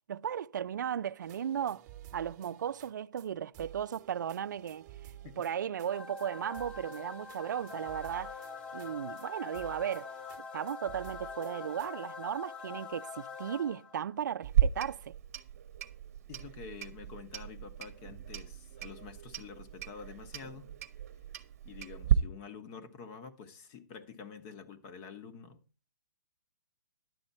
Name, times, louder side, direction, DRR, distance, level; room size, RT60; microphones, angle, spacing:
voice 1, 0.1-1.8 2.1-4.9 5.4-8.4 8.7-10.1 10.4-15.1, right 9 dB, 70° right, 0.4 m, -36 dB
sound 1, 1.2-2.9 3.2-3.3 3.5-5.9 6.2-6.3 6.5-9.3 9.5-10.4 10.7-11.9, right 12 dB, 20° right, 1.1 m, -52 dB
sound 2, 5.9-14.1, left 5 dB, 10° left, 0.4 m, -44 dB
Clock, 14.4-22.1, right 10 dB, 50° right, 1.0 m, -34 dB
voice 2, 16.3-20.7 21.6-25.6, left 6 dB, 25° left, 1.0 m, -48 dB
11.0 x 7.8 x 4.2 m
hypercardioid pair, 165°, 10 cm